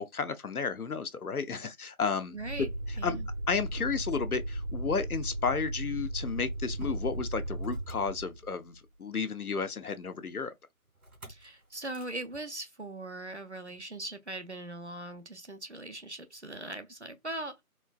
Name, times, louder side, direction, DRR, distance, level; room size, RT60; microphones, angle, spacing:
voice 1, 0.0-2.7 3.0-3.2 3.5-10.5, left 5 dB, 80° left, 0.7 m, -32 dB
voice 2, 2.3-2.7 3.0-3.3 11.3-17.6, right 2 dB, 50° right, 0.5 m, -40 dB
Motor vehicle (road), 2.3-8.8 11.0-11.5 11.8-12.2, right 1 dB, 90° right, 2.2 m, -36 dB
4.3 x 2.1 x 2.3 m
figure-of-eight pair, 175°, 44 cm